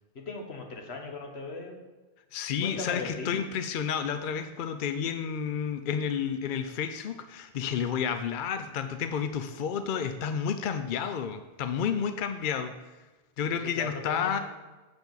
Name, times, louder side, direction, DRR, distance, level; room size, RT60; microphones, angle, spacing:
voice 1, 0.1-1.8 2.6-3.4 13.6-14.4, left 3 dB, 75° left, 2 dB, 1.4 m, -38 dB
voice 2, 2.3-12.7 13.4-14.4, left 7 dB, 60° left, 8 dB, 0.6 m, -31 dB
7.1 x 6.8 x 4.0 m, 1.2 s
omnidirectional pair, 1.1 m